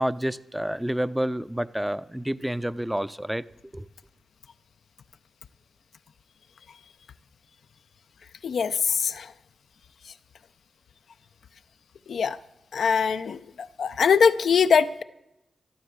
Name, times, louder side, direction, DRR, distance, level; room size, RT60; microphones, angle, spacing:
voice 1, 0.0-3.4 3.7-3.9, equal, 5° right, 0.5 m, -29 dB
voice 2, 8.4-9.3 12.1-12.4 12.7-13.4 13.8-15.0, left 6 dB, 80° left, 0.5 m, -22 dB
13.0 x 12.0 x 7.3 m
cardioid pair, 60°, 0 cm